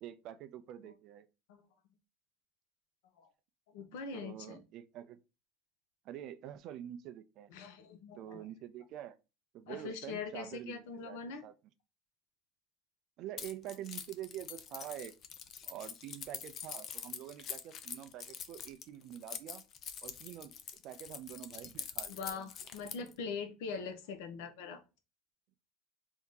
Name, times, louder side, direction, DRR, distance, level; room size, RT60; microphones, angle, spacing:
voice 1, 0.0-1.3 4.1-5.2 6.0-7.5 8.2-9.2 9.5-11.5 13.2-15.1 15.6-19.6 20.0-20.5 20.8-22.5, right 11 dB, 45° right, 0.4 m, -46 dB
voice 2, 3.7-4.6 7.5-8.5 9.7-11.4 22.1-24.8, left 5 dB, 80° left, 0.8 m, -42 dB
Keys jangling, 13.4-23.1, left 8 dB, 35° left, 0.4 m, -45 dB
3.5 x 2.7 x 3.6 m
cardioid pair, 160°, 0 cm